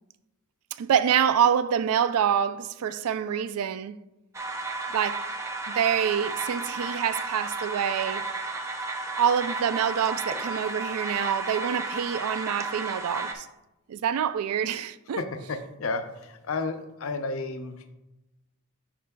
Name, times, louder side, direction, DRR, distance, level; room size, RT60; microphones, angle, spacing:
voice 1, 0.8-4.0 4.9-5.3 5.8-8.2 9.2-13.5 13.9-15.2, right 8 dB, 85° right, 0.3 m, -26 dB
sound 1, 4.3-13.3, right 3 dB, 15° right, 0.4 m, -33 dB
voice 2, 15.1-17.9, left 3 dB, 70° left, 0.5 m, -32 dB
10.0 x 4.3 x 2.2 m
head